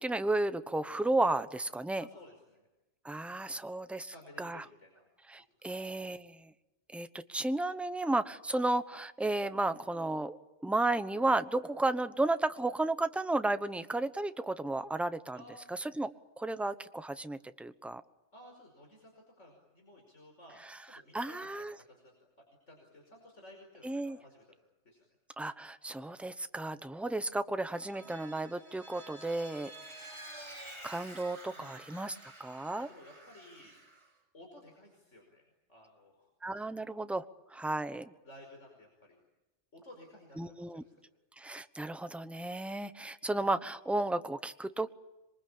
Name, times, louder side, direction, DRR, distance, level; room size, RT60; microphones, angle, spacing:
voice 1, 0.0-2.1 3.0-4.1 4.4-4.6 5.3-6.5 6.9-15.4 15.7-18.0 20.7-21.7 23.8-24.2 25.4-30.2 30.8-32.9 36.4-38.1 40.4-40.8 41.4-44.9, right 2 dB, ahead, 11 dB, 1.0 m, -33 dB
voice 2, 2.0-2.7 3.5-3.6 4.0-5.1 5.6-5.8 15.3-15.6 18.3-22.1 22.7-24.6 24.9-25.1 31.5-31.8 32.7-33.8 34.3-36.3 38.2-39.2 39.7-41.0, left 1 dB, 75° left, 1 dB, 5.6 m, -55 dB
Vehicle, 27.7-34.1, right 1 dB, 60° right, 6.0 m, -50 dB
26.5 x 23.5 x 8.8 m, 1.0 s
omnidirectional pair, 1.2 m